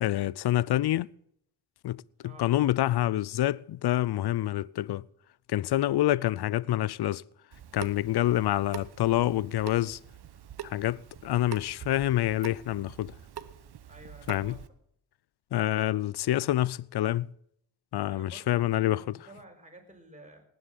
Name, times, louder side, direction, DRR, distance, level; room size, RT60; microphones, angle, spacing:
voice 1, 0.0-1.1 1.8-5.0 5.5-7.2 7.7-10.0 10.6-13.2 14.3-14.6 15.5-17.3 17.9-19.0, left 14 dB, 60° left, 0.6 m, -27 dB
Water tap faucet / Sink (filling or washing) / Drip, 7.5-14.7, right 9 dB, 60° right, 1.1 m, -45 dB
voice 2, 13.8-14.6 18.1-20.4, right 1 dB, 15° right, 5.3 m, -51 dB
18.5 x 8.0 x 7.7 m
supercardioid pair, 50°, 44 cm